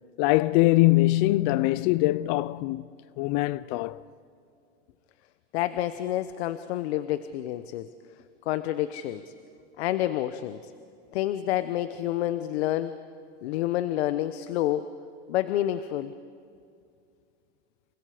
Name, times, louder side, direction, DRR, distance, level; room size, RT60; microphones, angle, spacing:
voice 1, 0.2-2.8 3.2-4.0, left 19 dB, 50° left, 0.6 m, -22 dB
voice 2, 5.5-7.9 8.4-9.3 9.8-10.7 11.1-12.9 13.4-14.9 15.3-16.1, left 13 dB, 70° left, 1.1 m, -28 dB
30.0 x 29.0 x 5.1 m
supercardioid pair, 125°, 33 cm